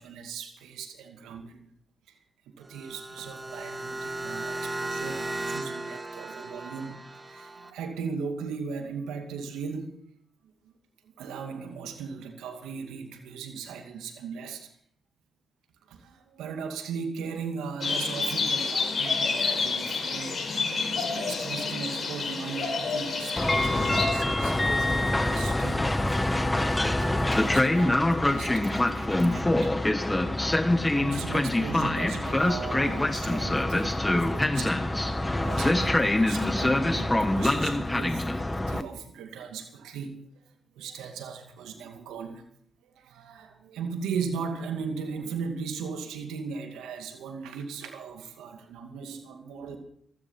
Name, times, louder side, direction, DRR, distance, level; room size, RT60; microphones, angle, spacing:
voice 1, 0.0-1.7 2.1-2.2 2.5-10.0 11.2-14.7 15.9-20.4 20.7-29.7 31.0-40.2 40.7-42.4 42.8-49.8, right 5 dB, 85° right, 5 dB, 2.3 m, -38 dB
sound 1, 2.6-7.7, right 2 dB, 30° right, 2.0 m, -36 dB
sound 2, 17.8-24.1, left 4 dB, 50° left, 5.1 m, -29 dB
Train, 23.4-38.8, left 1 dB, 15° left, 1.3 m, -25 dB
16.0 x 13.5 x 5.8 m, 0.64 s
supercardioid pair, 55°, 0 cm